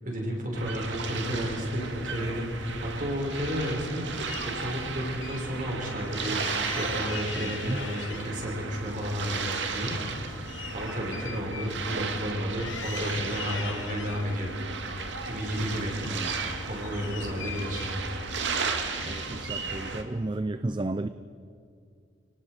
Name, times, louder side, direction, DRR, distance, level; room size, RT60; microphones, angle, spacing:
voice 1, 0.0-10.5 10.7-16.0 16.6-17.9, equal, 40° right, -1 dB, 5.8 m, -32 dB
sound 1, 0.5-20.0, right 4 dB, 70° right, 2.0 m, -34 dB
sound 2, 2.7-3.8 4.2-5.4 5.7-5.8 6.1-8.5 8.9-12.3 12.6-14.2 14.8-15.7 16.0-18.5 18.9-19.5, left 6 dB, 85° left, 2.1 m, -43 dB
voice 2, 7.4-7.9 15.7-16.6 17.4-18.0 19.0-21.1, right 2 dB, 25° right, 12 dB, 0.5 m, -34 dB
29.0 x 19.0 x 5.0 m, 2.5 s
head